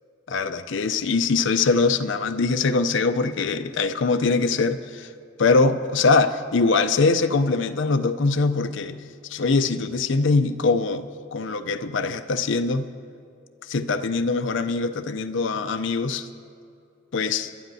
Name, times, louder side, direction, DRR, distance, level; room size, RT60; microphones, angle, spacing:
voice 1, 0.3-5.1 5.4-12.9 13.7-16.3 17.1-17.5, left 4 dB, 65° left, 8 dB, 0.5 m, -22 dB
26.0 x 12.0 x 2.7 m, 2.5 s
head